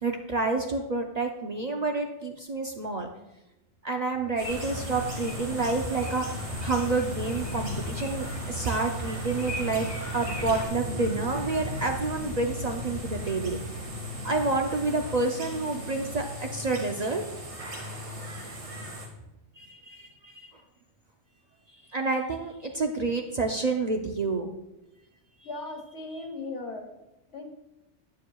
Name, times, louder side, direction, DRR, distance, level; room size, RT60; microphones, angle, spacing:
voice 1, 0.0-3.1 3.8-9.9 10.1-13.6 14.2-17.2 19.6-20.5 21.9-24.5 26.2-26.3, right 3 dB, 50° right, 3 dB, 0.5 m, -29 dB
sound 1, 4.4-10.7, left 1 dB, 40° left, 1.9 m, -42 dB
sound 2, 4.4-19.1, equal, 70° right, 2.0 m, -36 dB
voice 2, 25.4-27.0 27.3-27.5, left 2 dB, 75° left, 1 dB, 1.7 m, -37 dB
9.3 x 9.2 x 2.3 m, 0.95 s
omnidirectional pair, 1.2 m